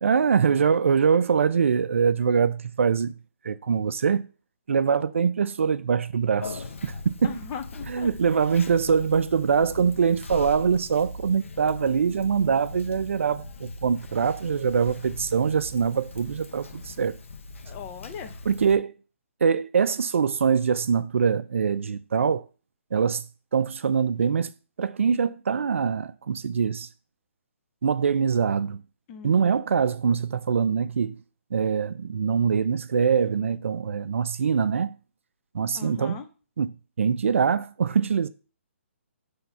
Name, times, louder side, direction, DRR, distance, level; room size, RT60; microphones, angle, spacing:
voice 1, 0.0-3.1 3.4-4.2 4.7-7.3 7.9-17.1 18.5-18.9 19.4-22.4 22.9-23.2 23.5-24.5 24.8-26.9 27.8-28.8 29.2-31.2 31.5-34.9 35.5-36.2 36.6-36.7 37.0-38.3, right 6 dB, 65° right, 0.5 m, -23 dB
Conversation, 6.4-18.8, left 2 dB, 70° left, 0.9 m, -40 dB
voice 2, 7.2-8.1 17.7-18.3 29.1-29.7 35.7-36.3, left 7 dB, 15° left, 0.5 m, -39 dB
5.6 x 3.5 x 5.7 m
hypercardioid pair, 165°, 7 cm